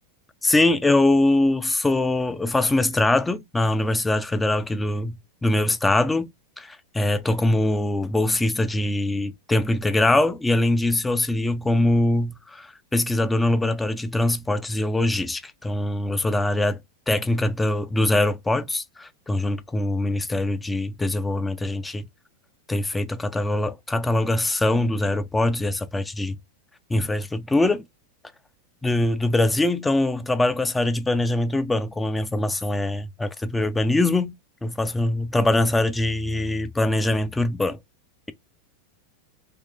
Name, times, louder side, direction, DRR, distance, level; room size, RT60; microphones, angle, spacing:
voice 1, 0.4-16.8 17.1-22.0 22.7-26.4 26.9-27.8 28.8-37.8, left 2 dB, 10° left, 0.4 m, -23 dB
3.4 x 3.0 x 2.6 m
figure-of-eight pair, 90°, 0 cm